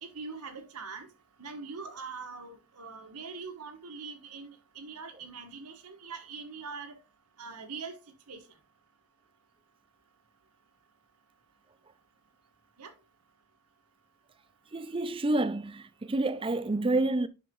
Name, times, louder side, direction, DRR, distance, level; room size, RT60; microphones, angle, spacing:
voice 1, 0.0-1.1 1.4-7.0 7.4-8.0 8.3-8.5 12.8-12.9, right 4 dB, 90° right, 1.4 m, -42 dB
voice 2, 14.7-17.3, right 2 dB, 25° right, 0.5 m, -28 dB
7.9 x 5.8 x 3.7 m
head